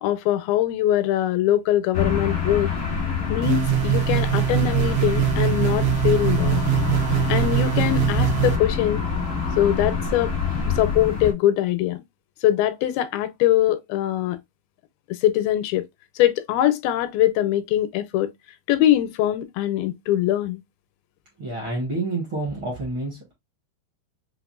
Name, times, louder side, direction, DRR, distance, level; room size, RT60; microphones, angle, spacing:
voice 1, 0.0-2.7 3.3-6.6 7.3-9.0 9.6-10.3 10.8-12.0 12.4-14.4 15.1-15.9 16.2-18.3 18.7-20.6, left 12 dB, 85° left, 2.3 m, -22 dB
sound 1, 1.9-11.3, left 5 dB, 55° left, 0.8 m, -26 dB
sound 2, 3.4-8.6, right 16 dB, 85° right, 2.6 m, -22 dB
voice 2, 21.4-23.3, right 2 dB, 55° right, 1.4 m, -28 dB
5.8 x 2.4 x 2.3 m
omnidirectional pair, 4.4 m